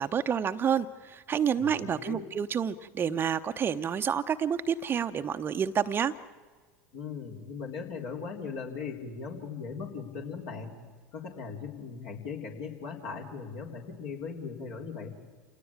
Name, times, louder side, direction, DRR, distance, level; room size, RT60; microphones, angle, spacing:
voice 1, 0.0-6.1, right 8 dB, 30° right, 9 dB, 0.7 m, -29 dB
voice 2, 1.6-2.3 6.9-10.8 11.1-15.1, left 5 dB, 60° left, 1 dB, 4.0 m, -39 dB
27.0 x 18.0 x 8.7 m, 1.5 s
hypercardioid pair, 80°, 8 cm